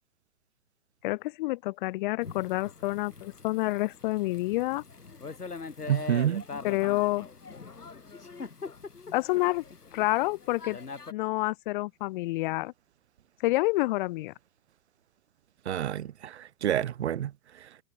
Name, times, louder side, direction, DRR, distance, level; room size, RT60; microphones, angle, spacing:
voice 1, 1.0-4.8 6.6-7.3 9.1-9.6 9.9-10.8 11.1-12.7 13.4-14.3, left 20 dB, 30° left, 1.8 m, -28 dB
Thunder / Rain, 2.2-11.1, left 4 dB, 75° left, 3.3 m, -43 dB
voice 2, 5.9-6.4 15.7-17.3 17.6-17.7, right 10 dB, 45° right, 0.6 m, -28 dB
figure-of-eight pair, 120°, 46 cm